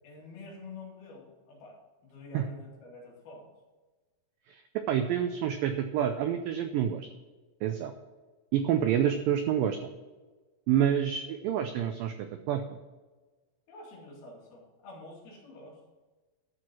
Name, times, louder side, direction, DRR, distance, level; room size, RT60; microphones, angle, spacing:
voice 1, 0.0-3.5 11.5-11.7 13.7-15.8, left 3 dB, 65° left, -2 dB, 4.4 m, -48 dB
voice 2, 4.9-7.1 7.6-7.9 8.5-9.8 10.7-12.6, right 9 dB, 85° right, 7 dB, 2.0 m, -28 dB
13.0 x 6.4 x 6.1 m, 1.3 s
omnidirectional pair, 4.8 m